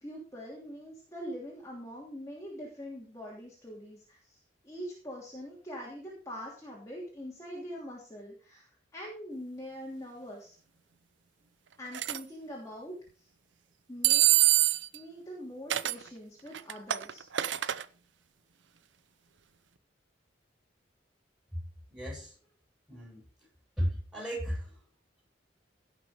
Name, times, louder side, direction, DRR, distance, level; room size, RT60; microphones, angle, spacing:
voice 1, 0.0-10.6 11.8-13.3 13.9-14.5 14.9-17.2, equal, 15° left, 3.0 m, -43 dB
sound 1, 11.9-12.2 14.0-15.0 15.7-16.0 16.5-17.8, right 13 dB, 80° right, 0.6 m, -25 dB
voice 2, 21.9-22.4 22.9-23.2 23.8-24.8, equal, 5° right, 7.2 m, -34 dB
16.5 x 6.5 x 5.1 m
head